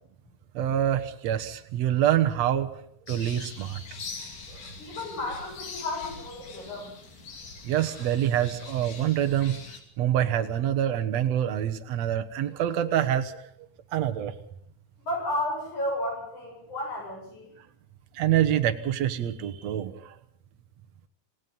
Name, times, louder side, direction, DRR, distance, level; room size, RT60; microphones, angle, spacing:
voice 1, 0.5-2.7 3.1-3.8 7.6-9.6 10.0-13.4 13.9-14.3 18.1-20.1, right 11 dB, 60° right, 6 dB, 2.3 m, -26 dB
sound 1, 3.1-9.8, left 4 dB, 90° left, 4.5 m, -43 dB
voice 2, 4.8-6.9 15.0-17.5, left 1 dB, 65° left, -1 dB, 9.1 m, -32 dB
27.5 x 17.5 x 5.5 m, 0.68 s
omnidirectional pair, 3.7 m